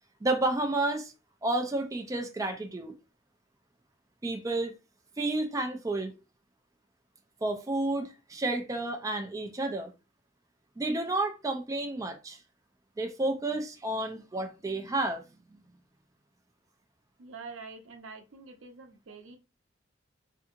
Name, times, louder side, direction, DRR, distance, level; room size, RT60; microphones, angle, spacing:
voice 1, 0.2-1.1 1.4-2.9 4.2-4.7 5.2-6.1 7.4-9.9 10.8-12.4 13.0-15.2 15.5-15.6, right 2 dB, 15° right, 0.4 m, -31 dB
voice 2, 17.2-19.4, right 4 dB, 85° right, 0.6 m, -46 dB
2.7 x 2.6 x 2.5 m
head